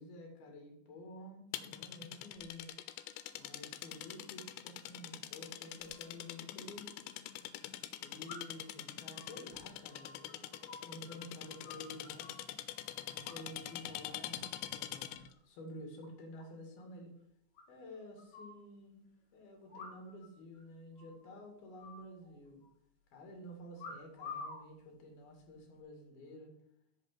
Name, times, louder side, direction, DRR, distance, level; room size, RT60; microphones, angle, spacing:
voice 1, 0.0-2.7 3.4-6.9 8.0-12.3 13.1-17.1 17.7-22.6 23.1-26.5, left 1 dB, 60° left, 1 dB, 3.9 m, -51 dB
sound 1, 1.5-15.3, left 13 dB, 90° left, 2.9 m, -45 dB
sound 2, 6.5-6.6 8.3-8.7 9.1-11.2 11.4-12.5 13.2-13.8 14.1-14.4 14.8-15.4 15.7-15.8 16.0-16.1 16.4-16.5 16.8-16.9 17.6-18.6 19.7-20.3 20.5-20.6 21.0-21.3 21.8-22.7 23.8-24.6 25.4-25.7, left 4 dB, 45° left, 3.9 m, -50 dB
8.2 x 7.1 x 8.4 m, 0.76 s
omnidirectional pair, 5.1 m